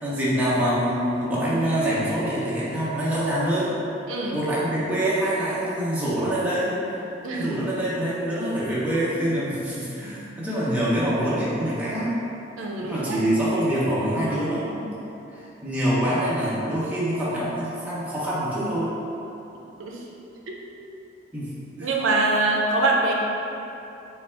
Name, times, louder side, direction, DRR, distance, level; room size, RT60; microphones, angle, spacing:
voice 1, 0.0-3.7 4.3-7.0 7.3-12.2 12.8-14.9 15.3-18.9 21.3-21.5 21.8-21.9, right 1 dB, 10° right, -10 dB, 0.7 m, -25 dB
voice 2, 4.1-4.4 7.2-7.6 12.6-13.3 19.8-20.0 21.8-23.1, right 2 dB, 85° right, -1 dB, 0.4 m, -24 dB
4.1 x 2.3 x 3.3 m, 2.9 s
head